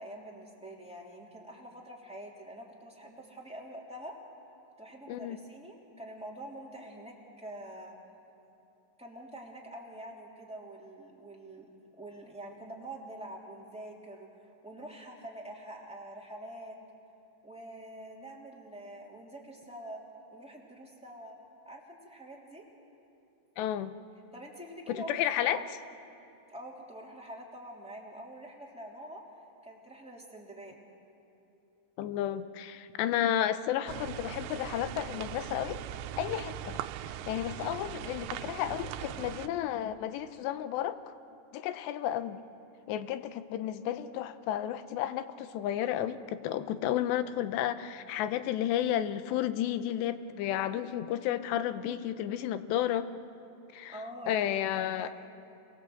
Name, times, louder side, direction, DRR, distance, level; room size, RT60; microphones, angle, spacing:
voice 1, 0.0-4.2 4.8-8.0 9.0-16.8 17.4-20.0 20.3-21.3 21.7-22.6 24.3-25.7 26.5-29.2 29.6-30.8 53.9-55.1, right 1 dB, ahead, -3 dB, 2.0 m, -46 dB
voice 2, 23.6-23.9 24.9-25.6 32.0-35.8 36.2-36.8 37.3-41.1 41.5-42.4 42.9-53.1 53.7-54.0 54.3-55.1, left 11 dB, 80° left, 12 dB, 3.0 m, -32 dB
sound 1, 33.9-39.5, right 11 dB, 85° right, 3.0 m, -40 dB
27.0 x 21.5 x 7.9 m, 2.8 s
omnidirectional pair, 5.0 m